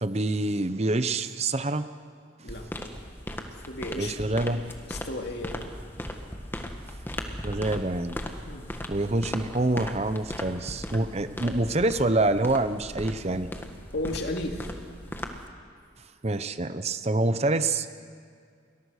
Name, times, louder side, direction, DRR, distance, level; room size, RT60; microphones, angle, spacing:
voice 1, 0.0-1.9 4.0-4.6 7.4-8.2 8.9-13.5 16.2-17.9, right 2 dB, 35° right, 11 dB, 0.8 m, -26 dB
sound 1, 2.5-15.5, left 1 dB, 10° left, 1.6 m, -38 dB
voice 2, 3.5-5.7 8.4-8.8 13.9-14.7, left 1 dB, 55° left, 3 dB, 2.4 m, -35 dB
29.5 x 22.0 x 6.5 m, 2.2 s
head